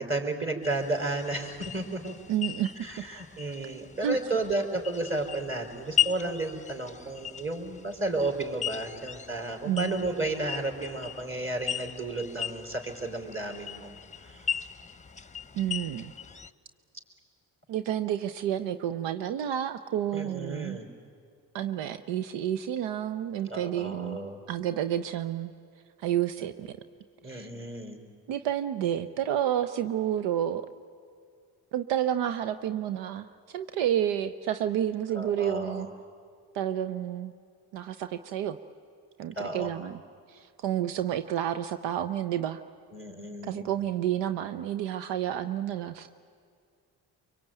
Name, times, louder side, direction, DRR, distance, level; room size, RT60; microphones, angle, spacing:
voice 1, 0.0-2.1 2.8-13.9 14.2-14.5 20.1-20.9 23.5-24.4 26.4-26.5 27.2-28.0 35.1-35.9 39.4-39.7 42.9-43.6, right 2 dB, 30° right, 3 dB, 4.9 m, -33 dB
sound 1, 0.6-16.5, left 10 dB, 15° left, 0.9 m, -37 dB
voice 2, 2.3-3.0 4.0-4.2 9.6-10.0 15.5-16.1 17.7-20.8 21.5-24.2 24.5-25.5 26.0-26.7 27.2-27.5 28.3-30.6 31.7-35.9 36.5-37.3 37.7-38.6 39.2-40.0 40.3-42.6 43.4-46.2, right 10 dB, 85° right, 11 dB, 0.7 m, -30 dB
23.5 x 23.5 x 9.2 m, 2.2 s
supercardioid pair, 50°, 42 cm